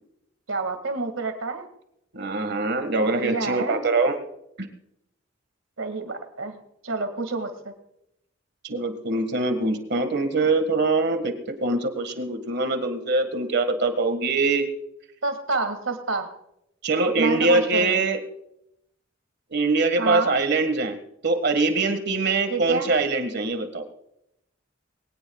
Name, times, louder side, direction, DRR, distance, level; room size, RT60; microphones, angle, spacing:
voice 1, 0.5-1.7 3.0-3.8 5.8-7.7 15.2-16.3 17.2-18.0 20.0-20.4 22.5-22.9, right 3 dB, 80° right, 7 dB, 2.1 m, -28 dB
voice 2, 2.1-4.2 4.6-4.7 8.6-14.6 16.8-18.2 19.5-21.0 21.2-23.9, right 3 dB, 55° right, 7 dB, 1.7 m, -23 dB
22.5 x 17.5 x 2.4 m, 0.81 s
head